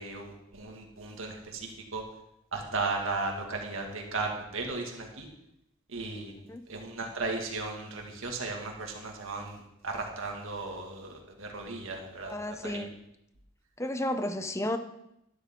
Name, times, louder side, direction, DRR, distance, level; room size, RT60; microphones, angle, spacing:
voice 1, 0.0-2.0 2.5-5.3 5.9-6.3 6.7-12.4 12.6-12.8, right 3 dB, 75° right, 1 dB, 2.1 m, -36 dB
voice 2, 12.3-12.9 13.8-14.8, left 1 dB, 15° left, 9 dB, 0.7 m, -32 dB
12.5 x 12.0 x 3.8 m, 0.82 s
head